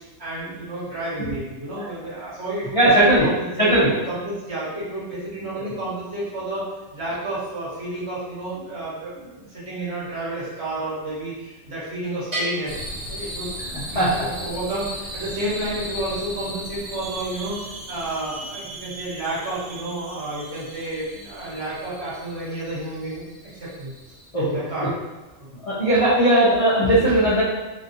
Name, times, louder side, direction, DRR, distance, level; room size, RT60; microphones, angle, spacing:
voice 1, 0.2-3.7 4.1-12.7 13.1-23.9 24.3-24.9, right 2 dB, 55° right, -9 dB, 1.4 m, -31 dB
voice 2, 2.7-3.3 3.6-3.9 5.6-5.7 13.9-14.1 24.3-24.4 25.6-27.4, right 1 dB, 40° left, -11 dB, 0.5 m, -18 dB
Bell, 12.3-14.0, equal, 35° right, 1.0 m, -33 dB
sound 1, 12.7-24.3, right 1 dB, 80° right, 1.0 m, -37 dB
2.9 x 2.7 x 2.6 m, 1.1 s
omnidirectional pair, 1.3 m